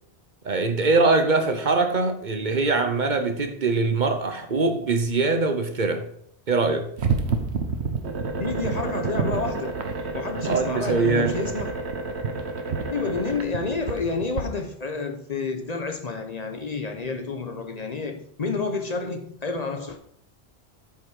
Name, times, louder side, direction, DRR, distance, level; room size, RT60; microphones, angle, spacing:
voice 1, 0.4-6.1 6.5-6.9 10.4-11.4, right 3 dB, 50° right, 0.9 m, -22 dB
sound 1, 7.0-14.4, right 4 dB, 90° right, 1.3 m, -29 dB
voice 2, 8.4-9.8 10.1-11.7 12.9-20.0, left 4 dB, 40° left, 0.9 m, -29 dB
8.6 x 5.7 x 4.8 m
omnidirectional pair, 1.1 m